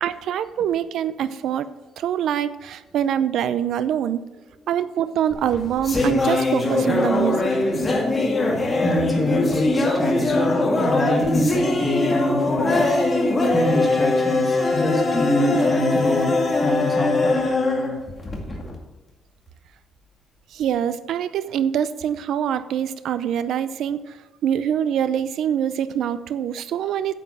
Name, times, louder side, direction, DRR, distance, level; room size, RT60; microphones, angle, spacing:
voice 1, 0.0-1.7 2.0-4.2 4.7-7.4 20.5-24.2 24.4-27.1, right 9 dB, 75° right, 14 dB, 0.6 m, -24 dB
sound 1, 5.3-18.8, left 2 dB, 25° left, 2.2 m, -22 dB
voice 2, 8.8-12.9 13.5-17.4, equal, 10° left, -2 dB, 2.3 m, -25 dB
9.5 x 7.7 x 6.2 m, 1.1 s
cardioid pair, 125°, 0 cm